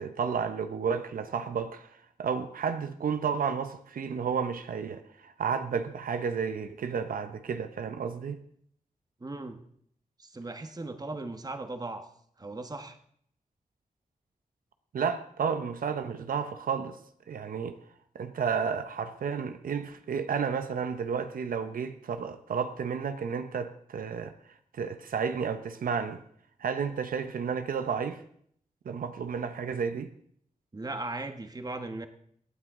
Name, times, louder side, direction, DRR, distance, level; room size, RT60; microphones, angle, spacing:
voice 1, 0.0-1.9 2.2-8.4 14.9-17.0 17.3-17.8 18.1-24.3 24.7-26.2 26.6-28.2 28.8-30.1, right 6 dB, 90° right, 0.8 m, -32 dB
voice 2, 9.2-9.6 10.2-12.1 12.4-13.0 30.7-32.1, right 2 dB, 25° right, 1.2 m, -37 dB
23.0 x 9.3 x 3.7 m
wide cardioid pair, 100°, 14 cm